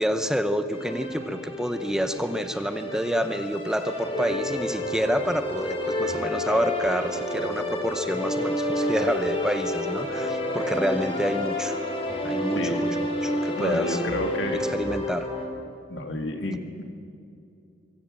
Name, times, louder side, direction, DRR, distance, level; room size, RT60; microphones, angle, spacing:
voice 1, 0.0-11.8 12.2-12.9 13.2-14.0 14.6-15.3, equal, 5° right, 9 dB, 0.7 m, -28 dB
sound 1, 0.7-15.5, left 1 dB, 30° left, 3.1 m, -30 dB
voice 2, 13.6-14.6 15.9-16.8, left 1 dB, 75° left, 5 dB, 2.4 m, -29 dB
24.0 x 16.5 x 7.6 m, 2.5 s
head